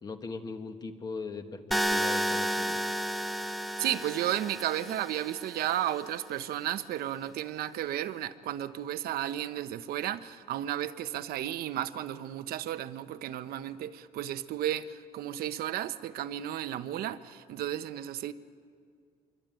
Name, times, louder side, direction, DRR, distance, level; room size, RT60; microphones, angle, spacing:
voice 1, 0.0-2.8 3.4-3.5, left 4 dB, 25° left, 6 dB, 1.6 m, -40 dB
sound 1, 1.7-5.7, equal, ahead, 0.8 m, -32 dB
voice 2, 3.8-18.3, right 12 dB, 80° right, 11 dB, 1.0 m, -33 dB
26.0 x 24.0 x 9.1 m, 2.2 s
cardioid pair, 175°, 15 cm